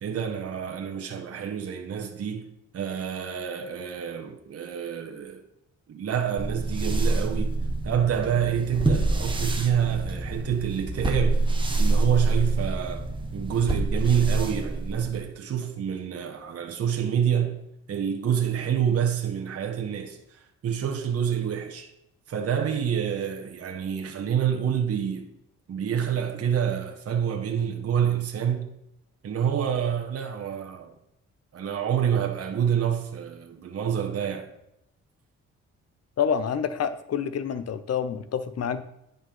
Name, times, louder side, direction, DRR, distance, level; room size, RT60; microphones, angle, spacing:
voice 1, 0.0-2.5 2.7-5.5 5.9-7.5 7.8-11.5 11.8-13.0 13.3-17.6 17.9-21.9 22.3-25.3 25.7-28.7 29.2-30.9 31.5-34.5, right 8 dB, 50° right, 1.4 m, -27 dB
sound 1, 6.4-15.3, right 2 dB, 15° right, 1.5 m, -26 dB
voice 2, 36.2-38.8, left 7 dB, 55° left, 1.0 m, -27 dB
9.9 x 5.5 x 5.6 m
cardioid pair, 90°, 30 cm